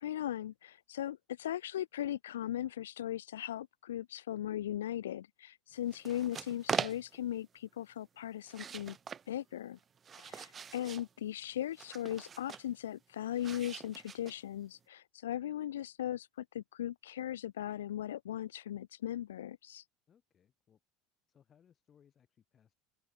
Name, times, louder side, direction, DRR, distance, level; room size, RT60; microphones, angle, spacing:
voice 1, 0.0-9.0 9.3-9.8 10.2-19.8, left 11 dB, 85° left, 0.4 m, -38 dB
sound 1, 5.9-7.3 8.4-9.3 9.8-11.1 11.8-12.7 13.4-14.6, right 7 dB, 35° right, 0.4 m, -41 dB
voice 2, 20.1-20.8 21.3-22.7, left 8 dB, 40° left, 5.3 m, -67 dB
open air
hypercardioid pair, 85°, 0 cm